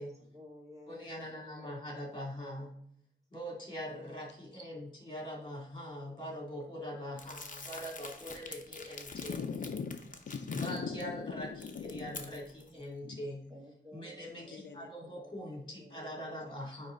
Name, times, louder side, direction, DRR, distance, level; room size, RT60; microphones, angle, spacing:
voice 1, 0.0-1.8 4.8-4.9 5.9-6.2 8.7-8.8 12.6-12.7 13.5-15.5 15.8-16.4, left 1 dB, 15° right, -1 dB, 1.6 m, -55 dB
voice 2, 0.9-2.8 3.3-9.3 10.5-11.5 11.8-13.4 13.9-16.9, equal, 25° left, -2 dB, 2.4 m, -42 dB
Crumpling crinkling, 7.2-11.0 11.4-12.7, left 3 dB, 45° left, 0.8 m, -47 dB
voice 3, 9.1-12.3 13.1-13.2 14.4-14.9 16.5-16.6, left 5 dB, 75° left, 7 dB, 0.5 m, -40 dB
9.2 x 3.2 x 3.8 m, 0.68 s
wide cardioid pair, 95°, 19 cm